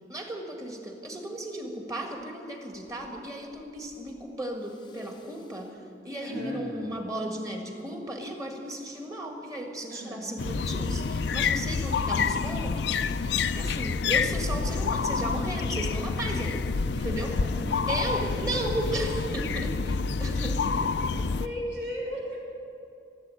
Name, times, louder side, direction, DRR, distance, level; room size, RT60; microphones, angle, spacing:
voice 1, 0.1-5.8 6.0-12.9 13.5-16.6 16.9-17.3 17.9-20.9 21.2-21.3, right 1 dB, 20° right, 2 dB, 1.7 m, -35 dB
Respiratory sounds, 2.2-2.3 2.7-3.3 3.5-4.3 4.6-5.7 6.3-7.1 10.7-11.4 11.9-13.0 14.6-15.2 16.2-16.9 17.4-18.2 20.0-20.9 21.4-21.5, left 1 dB, 25° left, 0.6 m, -47 dB
voice 2, 6.2-6.6 9.9-10.2 16.9-17.2 21.2-22.5, equal, 85° right, -4 dB, 4.3 m, -36 dB
sound 1, 10.4-21.5, left 5 dB, 80° left, 0.5 m, -28 dB
15.0 x 8.1 x 9.9 m, 2.7 s
head